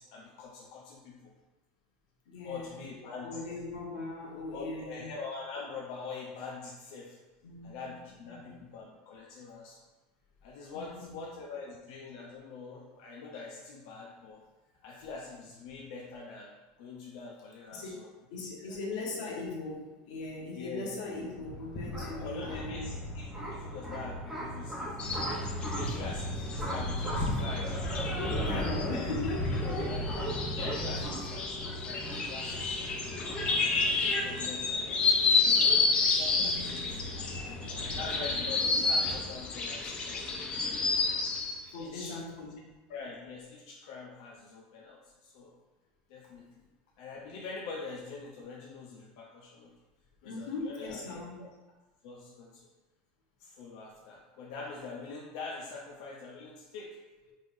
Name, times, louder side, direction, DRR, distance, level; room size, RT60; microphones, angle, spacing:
voice 1, 0.0-1.3 2.4-3.4 4.5-7.2 7.6-9.8 10.4-14.4 14.8-16.5 16.8-18.1 18.6-18.8 20.5-21.0 22.0-25.3 25.7-27.8 28.2-29.1 29.6-32.9 33.6-35.6 35.9-37.1 37.5-40.2 40.6-41.2 41.8-42.2 42.9-45.5 46.1-46.6 47.0-49.7 50.2-51.5 52.0-52.7 53.4-57.0, left 4 dB, 65° left, -3 dB, 0.6 m, -44 dB
voice 2, 2.3-2.9 3.2-5.1 7.4-8.6 10.7-11.2 17.7-17.9 18.3-22.9 28.2-30.0 32.1-32.2 36.3-36.8 41.7-42.7 46.2-46.3 50.2-51.4, left 2 dB, 90° left, -2 dB, 1.1 m, -39 dB
sound 1, 21.1-39.2, equal, 5° right, 0.9 m, -37 dB
sound 2, 25.0-41.6, left 4 dB, 25° left, 0.5 m, -31 dB
5.5 x 3.2 x 2.6 m, 1.1 s
supercardioid pair, 160°, 4 cm